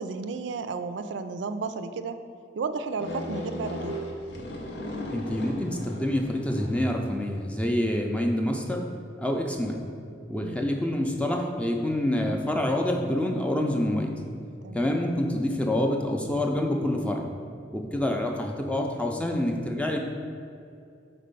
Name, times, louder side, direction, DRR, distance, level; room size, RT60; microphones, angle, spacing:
voice 1, 0.0-2.2 2.6-4.0 10.4-10.7 14.6-14.9, right 4 dB, 85° right, 10 dB, 0.3 m, -33 dB
sound 1, 3.0-7.0, left 1 dB, 85° left, 0.7 m, -36 dB
voice 2, 5.1-8.8 9.2-9.8 10.3-14.2 14.7-17.2 17.7-20.0, left 1 dB, 5° left, 2 dB, 0.4 m, -27 dB
4.4 x 4.2 x 5.3 m, 2.4 s
head